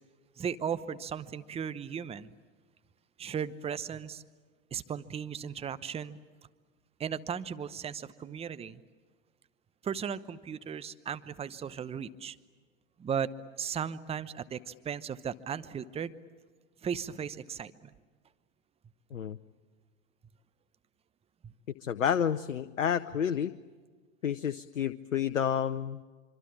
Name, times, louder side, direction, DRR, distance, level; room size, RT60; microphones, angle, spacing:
voice 1, 0.4-2.3 3.2-4.2 4.7-6.2 7.0-8.8 9.8-12.4 13.0-13.3 13.6-16.1 16.8-17.9 21.4-21.5, right 7 dB, 15° right, 15 dB, 0.9 m, -36 dB
voice 2, 21.8-23.5 24.2-26.0, left 8 dB, 85° left, 10 dB, 0.8 m, -30 dB
25.5 x 25.5 x 8.7 m, 1.4 s
hypercardioid pair, 95°, 39 cm